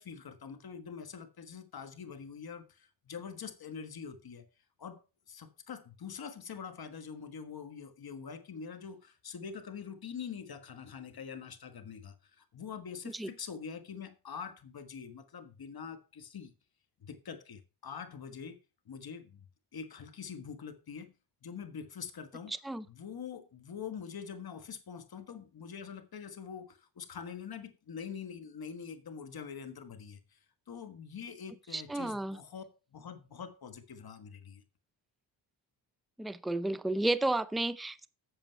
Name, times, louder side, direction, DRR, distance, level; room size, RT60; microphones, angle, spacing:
voice 1, 0.0-4.4 4.8-5.0 5.3-16.5 17.0-18.6 18.8-19.4 19.7-21.1 21.4-22.5 22.9-30.4 30.7-32.6 32.9-34.6, left 6 dB, 50° left, 1.5 m, -44 dB
voice 2, 22.5-22.8 31.7-32.4 36.2-38.1, right 2 dB, ahead, 0.5 m, -32 dB
8.0 x 7.1 x 4.4 m
cardioid pair, 65°, 46 cm